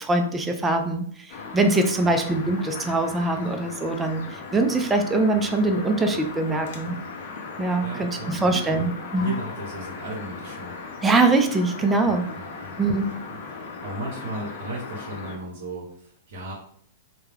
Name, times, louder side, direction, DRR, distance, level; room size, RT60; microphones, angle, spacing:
voice 1, 0.0-7.0 7.6-9.3 11.0-12.2 12.8-13.1, right 2 dB, 10° right, 5 dB, 0.4 m, -23 dB
sound 1, 1.3-15.4, left 4 dB, 60° left, 0.6 m, -38 dB
voice 2, 7.8-8.9 9.2-10.8 12.1-12.8 13.1-13.4 13.8-16.5, right 1 dB, 70° right, -4 dB, 0.8 m, -36 dB
2.3 x 2.2 x 3.2 m, 0.64 s
hypercardioid pair, 135°, 0 cm